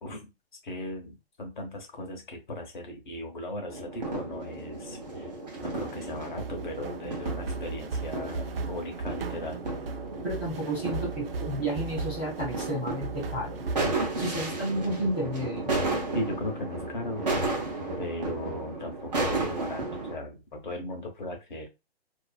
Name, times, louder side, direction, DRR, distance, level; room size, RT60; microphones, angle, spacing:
voice 1, 0.0-0.3 0.6-5.3 5.6-9.6 16.1-17.2 18.0-21.7, left 1 dB, 50° left, 3 dB, 0.9 m, -37 dB
sound 1, 3.7-20.2, right 2 dB, 40° right, 0.8 m, -34 dB
sound 2, 5.6-13.8, right 4 dB, 65° right, 0.5 m, -37 dB
voice 2, 10.2-13.6 14.2-15.7, right 1 dB, 10° right, -11 dB, 0.5 m, -31 dB
2.5 x 2.1 x 2.3 m, 0.25 s
hypercardioid pair, 170°, 31 cm